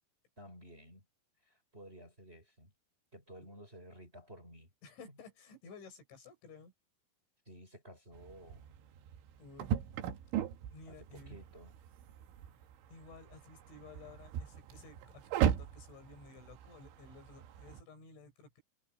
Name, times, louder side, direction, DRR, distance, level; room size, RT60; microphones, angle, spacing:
voice 1, 0.4-1.0 1.5-2.7 3.1-4.7 7.5-8.7 10.9-11.8, equal, 15° right, 5.5 m, -54 dB
voice 2, 4.8-6.7 9.4-9.7 10.7-11.4 12.9-18.6, left 4 dB, 80° left, 9.0 m, -54 dB
sound 1, 8.1-17.8, right 10 dB, 90° right, 3.9 m, -38 dB
omnidirectional pair, 5.3 m